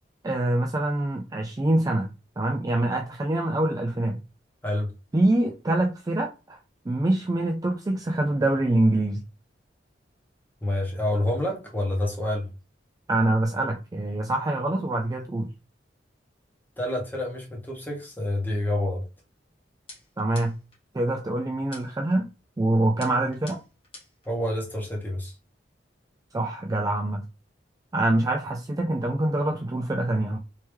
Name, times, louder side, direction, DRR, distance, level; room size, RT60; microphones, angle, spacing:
voice 1, 0.2-2.1 2.4-4.2 5.1-6.6 6.9-9.2 13.1-15.5 20.2-20.5 20.9-22.2 22.6-23.6 26.3-27.2 27.9-30.4, right 1 dB, 20° right, 0.3 m, -25 dB
voice 2, 10.6-12.5 16.8-19.0 24.2-25.3, left 1 dB, 10° left, 1.2 m, -28 dB
sound 1, 19.9-20.8 21.7-22.2 23.0-24.3, left 3 dB, 30° left, 1.3 m, -47 dB
3.4 x 3.0 x 3.1 m
head